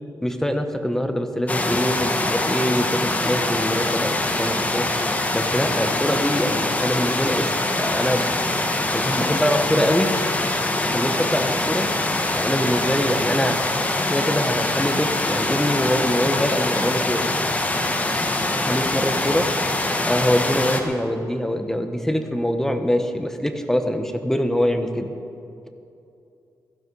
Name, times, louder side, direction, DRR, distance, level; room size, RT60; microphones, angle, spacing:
voice 1, 0.2-4.9 5.3-8.3 8.9-10.1 10.9-11.9 12.3-13.6 14.1-17.2 18.5-19.5 20.0-25.1, equal, 5° left, 6 dB, 1.1 m, -24 dB
sound 1, 1.5-20.8, left 2 dB, 20° left, 1.4 m, -24 dB
16.5 x 14.0 x 4.7 m, 2.7 s
cardioid pair, 105°, 7 cm